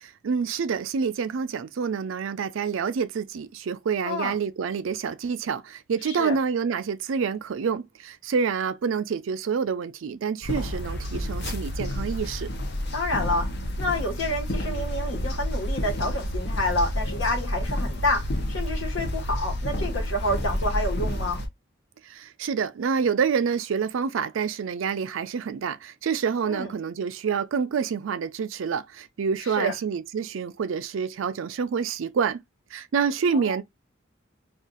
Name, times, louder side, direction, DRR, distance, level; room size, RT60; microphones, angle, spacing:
voice 1, 0.0-12.5 22.1-32.4 32.7-33.6, right 6 dB, 80° right, 0.4 m, -27 dB
voice 2, 6.0-6.4 12.9-13.5 13.8-21.4 26.4-26.7 29.4-29.7 33.3-33.6, left 1 dB, 75° left, 1.3 m, -28 dB
sound 1, 10.4-21.5, left 1 dB, 55° left, 0.7 m, -29 dB
2.5 x 2.4 x 3.8 m
head